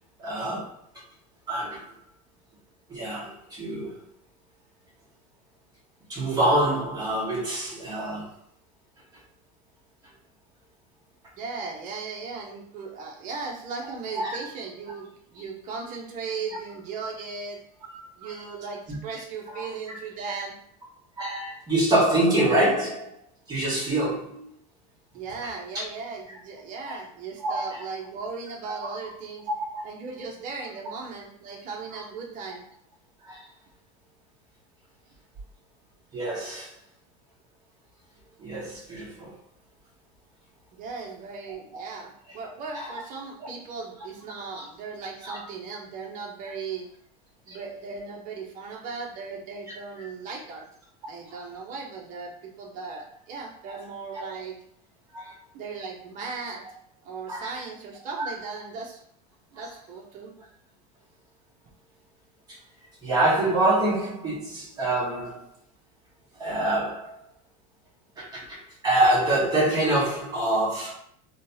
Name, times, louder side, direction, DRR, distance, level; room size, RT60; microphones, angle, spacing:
voice 1, 0.2-0.8 1.5-1.9 2.9-4.0 6.1-8.3 14.1-14.4 18.2-18.4 18.9-19.0 19.5-19.7 21.2-23.1 23.5-24.5 26.9-27.0 27.4-27.6 29.7-29.8 31.9-32.0 33.2-33.5 36.1-36.7 38.4-39.3 41.7-41.8 42.7-43.0 43.4-43.5 44.5-44.6 45.2-45.4 47.5-47.6 50.0-50.1 51.3-51.4 54.1-54.2 55.1-55.4 57.3-57.6 58.2-58.3 59.5-59.7 63.0-65.4 66.3-67.2 68.2-68.6 68.8-70.9, right 1 dB, 20° right, -6 dB, 1.4 m, -26 dB
voice 2, 11.3-17.6 18.2-20.5 25.1-29.5 29.8-32.6 40.7-46.9 47.5-50.7 51.1-54.6 55.5-56.6 57.0-59.0 59.5-60.4, right 4 dB, 40° right, -1 dB, 0.9 m, -37 dB
3.7 x 2.3 x 2.7 m, 0.65 s
supercardioid pair, 145°, 20 cm